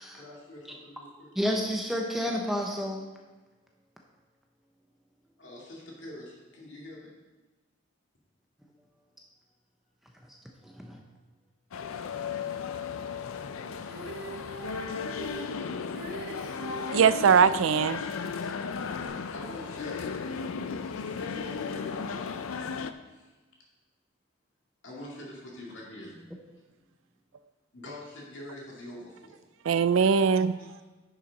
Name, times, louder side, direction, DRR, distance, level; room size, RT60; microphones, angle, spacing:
voice 1, 0.1-1.3 5.4-7.2 19.1-22.3 23.0-23.3 24.8-26.2 27.7-29.4 30.6-30.8, left 1 dB, 60° left, 2.4 m, -45 dB
voice 2, 1.4-3.0 10.3-10.4 10.6-11.0, equal, ahead, 0.7 m, -30 dB
sound 1, 11.7-22.9, left 5 dB, 85° left, 0.5 m, -35 dB
Female singing, 13.8-17.1 19.1-19.2, right 3 dB, 45° right, 1.4 m, -41 dB
voice 3, 16.9-18.0 29.6-30.6, right 6 dB, 75° right, 0.4 m, -21 dB
10.0 x 6.3 x 4.1 m
head